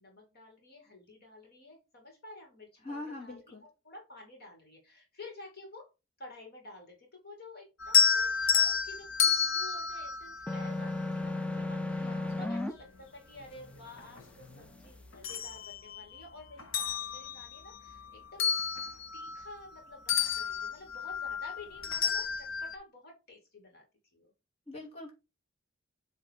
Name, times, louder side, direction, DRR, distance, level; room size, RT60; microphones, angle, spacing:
voice 1, 0.0-5.9 6.2-18.8 19.1-23.8 24.1-24.3, left 2 dB, 50° left, 1 dB, 2.4 m, -51 dB
voice 2, 2.8-3.6 12.0-12.4 24.7-25.1, left 2 dB, 30° left, -2 dB, 2.4 m, -43 dB
sound 1, 7.8-11.1 12.8-12.9 13.4-14.6 15.0-16.2 16.6-19.8 20.1-22.7, left 6 dB, 80° left, 1.0 m, -30 dB
sound 2, 10.5-12.7, left 2 dB, 5° left, 0.4 m, -34 dB
7.8 x 3.4 x 4.6 m, 0.27 s
head